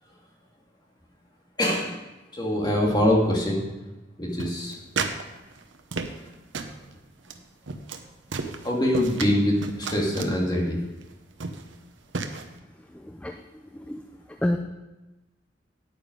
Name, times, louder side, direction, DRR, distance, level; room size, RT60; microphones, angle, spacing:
voice 1, 1.6-1.9 2.3-3.6 4.2-4.8 8.6-10.8, left 1 dB, 25° left, -1 dB, 2.1 m, -23 dB
sound 1, 4.4-5.2 5.5-6.3 6.5-6.8 7.2-7.4 7.7-8.0 8.3-9.3 9.6-10.4 11.0-11.1 11.4-11.7 12.1-12.4, right 4 dB, 80° right, 0.9 m, -32 dB
voice 2, 12.8-14.6, left 1 dB, 5° left, 4 dB, 0.4 m, -31 dB
9.3 x 9.2 x 5.2 m, 1.1 s
head